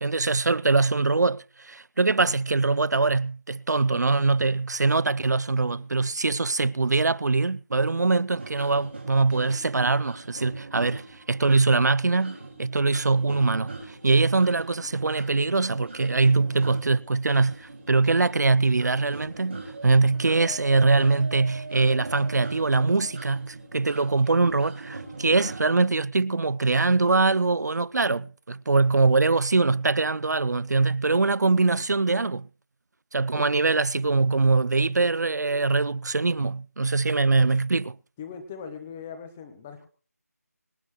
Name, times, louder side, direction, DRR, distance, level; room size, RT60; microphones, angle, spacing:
voice 1, 0.0-32.5 33.1-37.9, right 3 dB, 85° right, 0.5 m, -23 dB
sound 1, 8.3-25.8, right 3 dB, 40° right, 4.9 m, -42 dB
voice 2, 38.2-39.9, left 6 dB, 5° left, 0.5 m, -39 dB
25.5 x 9.2 x 3.1 m
figure-of-eight pair, 175°, 9 cm